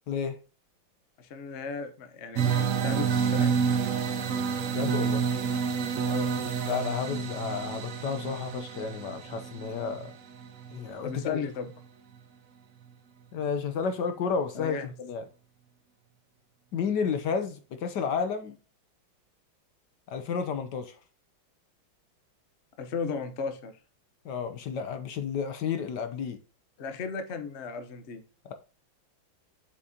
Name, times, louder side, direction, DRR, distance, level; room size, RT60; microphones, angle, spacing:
voice 1, 0.1-0.4 4.7-5.2 6.6-10.1 10.7-11.4 13.3-15.2 16.7-18.5 20.1-21.0 24.2-26.4 28.4-28.5, left 6 dB, 65° left, 1.3 m, -31 dB
voice 2, 1.2-3.6 6.1-6.3 11.0-11.7 14.5-14.9 22.8-23.8 26.8-28.2, left 5 dB, 45° left, 0.9 m, -35 dB
sound 1, 2.3-11.1, right 6 dB, 55° right, 1.0 m, -29 dB
8.0 x 6.3 x 2.8 m
omnidirectional pair, 2.2 m